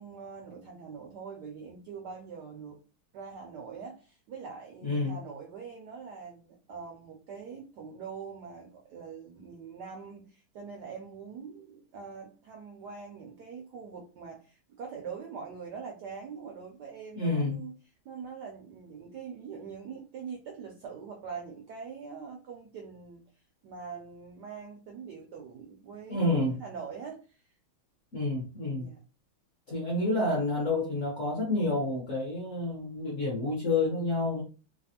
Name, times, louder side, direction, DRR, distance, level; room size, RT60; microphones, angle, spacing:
voice 1, 0.0-2.8 3.1-17.7 18.0-23.2 23.6-27.4 28.7-29.0, right 6 dB, 75° right, 0.9 m, -43 dB
voice 2, 4.8-5.2 17.1-17.6 26.1-26.6 28.1-28.9 29.7-34.4, left 2 dB, 50° left, 0.9 m, -29 dB
3.3 x 2.3 x 2.7 m
omnidirectional pair, 2.3 m